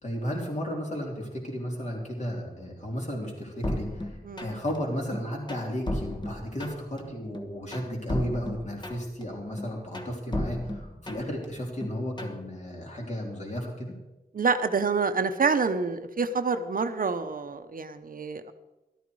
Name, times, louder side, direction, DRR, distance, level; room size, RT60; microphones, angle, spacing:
voice 1, 0.0-13.9, equal, 45° left, -1 dB, 3.7 m, -34 dB
sound 1, 3.6-4.8 5.1-7.0 7.3-9.2 9.6-11.5 11.8-12.4, left 1 dB, 25° left, 1.3 m, -34 dB
voice 2, 14.3-18.5, right 4 dB, 60° right, 9 dB, 0.8 m, -27 dB
13.5 x 13.0 x 4.7 m, 1.0 s
wide cardioid pair, 125°, 16 cm